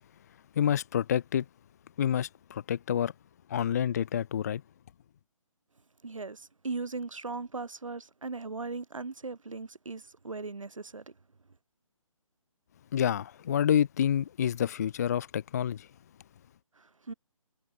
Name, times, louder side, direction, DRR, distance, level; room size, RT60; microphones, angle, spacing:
voice 1, 0.6-1.4 2.0-3.1 3.5-4.6 12.9-15.9, left 9 dB, 30° left, 0.6 m, -28 dB
voice 2, 6.0-11.0 16.8-17.1, right 3 dB, 65° right, 2.9 m, -38 dB
figure-of-eight pair, 145°, 18 cm